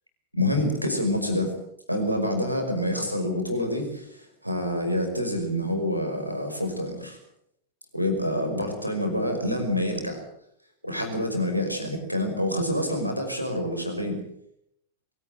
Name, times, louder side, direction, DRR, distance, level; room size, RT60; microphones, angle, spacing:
voice 1, 0.3-1.6 1.9-7.2 7.9-10.2 10.8-14.2, left 1 dB, 90° right, 4 dB, 5.5 m, -27 dB
23.0 x 17.5 x 7.9 m, 0.72 s
figure-of-eight pair, 90°, 0 cm